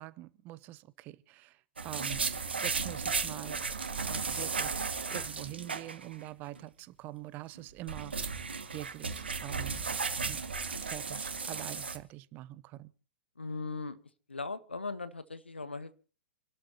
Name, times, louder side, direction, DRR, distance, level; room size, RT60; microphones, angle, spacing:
voice 1, 0.0-2.3 2.6-3.7 4.0-8.4 8.7-9.9 10.3-12.9, right 16 dB, 30° right, 0.9 m, -45 dB
sound 1, 1.8-6.3 6.6-6.7 7.6-12.0, right 5 dB, 70° right, 2.0 m, -35 dB
voice 2, 13.4-14.0 14.3-15.9, left 3 dB, 80° left, 1.3 m, -38 dB
29.0 x 12.5 x 2.9 m
figure-of-eight pair, 105°, 6 cm